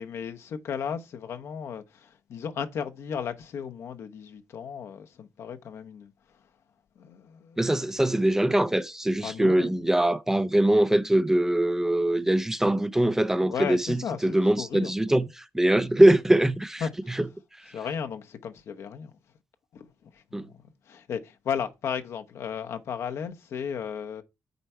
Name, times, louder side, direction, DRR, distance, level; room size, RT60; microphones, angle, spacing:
voice 1, 0.0-6.1 7.0-7.6 9.2-9.9 12.1-12.2 13.5-15.2 15.7-15.8 16.8-17.2 17.7-19.2 19.7-20.6 20.9-24.2, left 7 dB, 65° left, 0.8 m, -35 dB
voice 2, 7.6-16.8 17.1-17.2 20.3-20.5, right 1 dB, 10° right, 0.5 m, -22 dB
8.0 x 4.5 x 4.3 m
cardioid pair, 115°, 5 cm